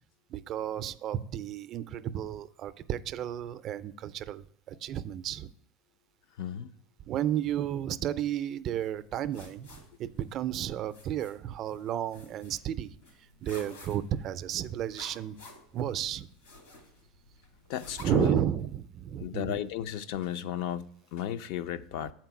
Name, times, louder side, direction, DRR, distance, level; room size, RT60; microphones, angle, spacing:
voice 1, 0.3-5.5 7.1-13.0 13.4-15.4 15.7-16.3 18.0-19.6 22.0-22.1, right 11 dB, 45° right, 0.4 m, -32 dB
voice 2, 6.4-6.7 17.7-18.4 19.2-22.1, left 11 dB, 65° left, 0.5 m, -34 dB
sound 1, 8.8-18.1, left 2 dB, 80° left, 2.5 m, -53 dB
7.5 x 4.5 x 5.9 m
supercardioid pair, 120°, 0 cm